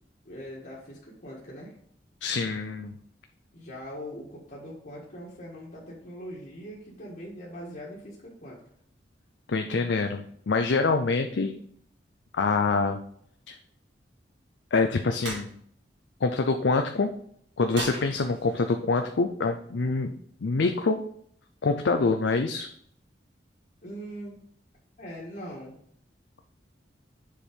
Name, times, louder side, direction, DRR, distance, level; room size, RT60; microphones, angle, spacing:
voice 1, 0.2-1.7 3.5-8.6 23.8-24.4 25.0-25.7, equal, 50° left, -6 dB, 1.6 m, -41 dB
voice 2, 2.2-3.0 9.5-11.5 12.3-13.0 13.5-13.6 14.7-15.6 16.2-17.1 17.6-20.1 20.4-21.0 21.6-22.7, left 3 dB, 80° left, 6 dB, 0.5 m, -25 dB
sound 1, 15.2-15.5 17.7-18.7, right 3 dB, 85° right, 2.1 m, -36 dB
7.2 x 4.6 x 5.2 m, 0.64 s
head